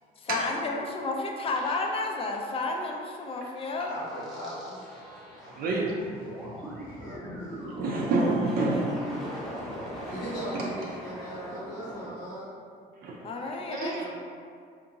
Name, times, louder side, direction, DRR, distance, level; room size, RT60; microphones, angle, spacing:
voice 1, 0.2-3.9 13.2-14.1, left 3 dB, 35° left, 1 dB, 0.4 m, -31 dB
sound 1, 1.5-2.2 2.6-2.7 3.6-12.1, equal, ahead, 0.7 m, -39 dB
voice 2, 3.8-5.0 7.0-7.5 9.7-12.5 13.8-14.1, equal, 65° left, -12 dB, 1.0 m, -39 dB
voice 3, 5.4-5.9 7.8-8.9 13.0-13.2 13.7-14.1, right 2 dB, 60° right, -2 dB, 0.4 m, -28 dB
2.6 x 2.5 x 2.8 m, 2.2 s
cardioid pair, 110°, 17 cm